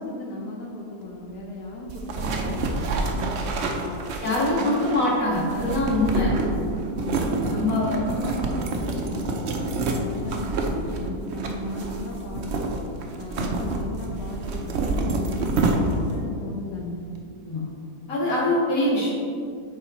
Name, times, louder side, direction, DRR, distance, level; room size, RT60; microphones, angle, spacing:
voice 1, 0.0-3.9 4.6-4.9 5.9-7.3 7.6-9.4 10.0-12.7 13.2-17.0, left 2 dB, 90° left, -1 dB, 1.3 m, -36 dB
sound 1, 1.9-16.2, right 3 dB, 55° right, 0.8 m, -28 dB
voice 2, 4.2-6.3 7.5-7.9 17.5-17.6 18.1-19.1, left 1 dB, 55° left, -7 dB, 2.3 m, -23 dB
6.9 x 4.9 x 4.4 m, 2.4 s
omnidirectional pair, 1.7 m